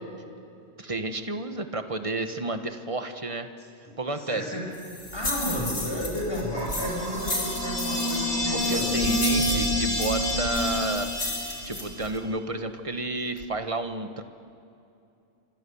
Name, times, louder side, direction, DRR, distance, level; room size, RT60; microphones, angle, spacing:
voice 1, 0.8-3.5 4.0-4.6 8.5-11.1 11.6-14.2, right 2 dB, 30° right, 8 dB, 1.3 m, -31 dB
voice 2, 4.2-4.6 5.1-9.7, equal, 20° left, -3 dB, 7.3 m, -33 dB
sound 1, 4.7-12.2, left 2 dB, 65° left, 3.5 m, -35 dB
sound 2, 6.5-11.0 11.9-12.0 13.4-13.5, right 4 dB, 65° right, 1.6 m, -36 dB
sound 3, 6.7-12.1, left 1 dB, 90° left, 4.6 m, -28 dB
28.5 x 25.0 x 7.1 m, 2.6 s
omnidirectional pair, 1.2 m